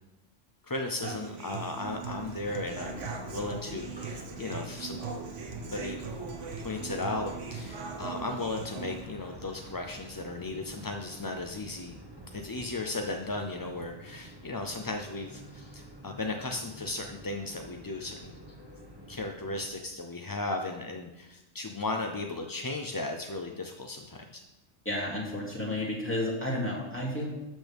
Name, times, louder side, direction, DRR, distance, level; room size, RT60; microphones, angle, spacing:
voice 1, 0.6-5.1 5.7-6.0 6.6-12.0 12.3-18.4 19.1-24.4, left 2 dB, 25° left, 3 dB, 0.4 m, -36 dB
Human voice / Acoustic guitar, 1.0-9.0, right 5 dB, 90° right, 1.4 m, -40 dB
sound 1, 1.8-19.7, right 1 dB, 20° right, 1.4 m, -47 dB
voice 2, 24.8-27.3, left 1 dB, 10° left, -4 dB, 2.5 m, -31 dB
12.5 x 8.2 x 3.5 m, 0.98 s
omnidirectional pair, 1.2 m